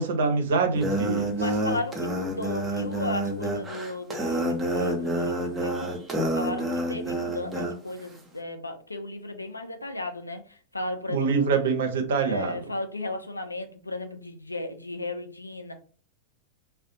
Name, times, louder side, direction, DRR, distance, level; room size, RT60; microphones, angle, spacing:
voice 1, 0.0-1.3 11.1-12.7, right 5 dB, 60° right, 0.5 m, -25 dB
sound 1, 0.7-7.7, right 1 dB, 15° right, 0.6 m, -28 dB
voice 2, 1.3-5.9 6.3-11.7 12.2-15.7, left 2 dB, 80° left, 0.4 m, -35 dB
2.4 x 2.1 x 2.6 m
figure-of-eight pair, 90°, 0 cm